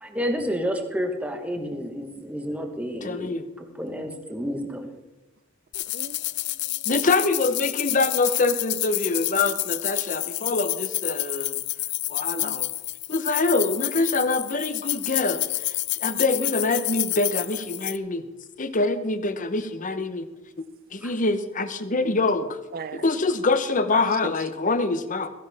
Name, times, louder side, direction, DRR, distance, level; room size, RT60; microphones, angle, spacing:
voice 1, 0.0-4.9 21.0-21.1, equal, 5° right, 1.3 m, -30 dB
voice 2, 3.0-3.5 6.9-11.6 12.1-12.7 13.1-18.3 18.6-20.3 20.9-22.6 22.9-25.3, left 3 dB, 40° left, 0.9 m, -25 dB
sound 1, 5.7-18.0, left 18 dB, 60° left, 0.4 m, -29 dB
voice 3, 5.7-6.9 8.5-8.6 12.4-12.6 22.7-23.1 23.9-24.4, right 5 dB, 50° right, 0.6 m, -39 dB
16.0 x 15.0 x 3.5 m
head